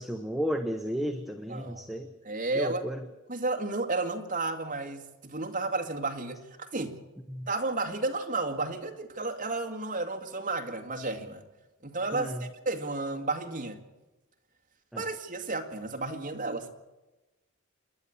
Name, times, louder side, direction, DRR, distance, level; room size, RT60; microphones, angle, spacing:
voice 1, 0.0-2.1 2.5-3.1 7.3-7.5 12.1-12.5 14.9-15.1, equal, ahead, 5 dB, 1.0 m, -33 dB
voice 2, 1.5-1.9 2.2-2.8 3.3-7.0 7.5-11.4 11.8-13.8 15.0-16.7, right 3 dB, 40° right, 4 dB, 2.1 m, -32 dB
28.0 x 11.0 x 8.5 m, 1.1 s
head